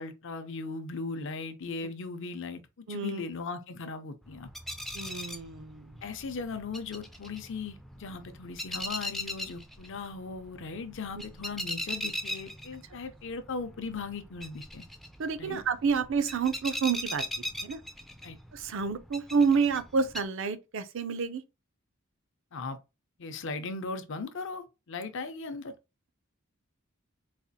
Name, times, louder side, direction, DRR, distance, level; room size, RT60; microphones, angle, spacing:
voice 1, 0.0-4.5 6.0-14.8 15.4-15.6 18.2-18.4 22.5-22.8 23.2-25.7, left 4 dB, 60° left, 0.6 m, -38 dB
voice 2, 2.9-3.2 4.9-5.9 15.2-17.2 17.6-17.8 18.5-21.4, right 5 dB, 60° right, 0.5 m, -29 dB
sound 1, 4.2-20.2, equal, ahead, 0.3 m, -40 dB
4.1 x 2.4 x 2.7 m
head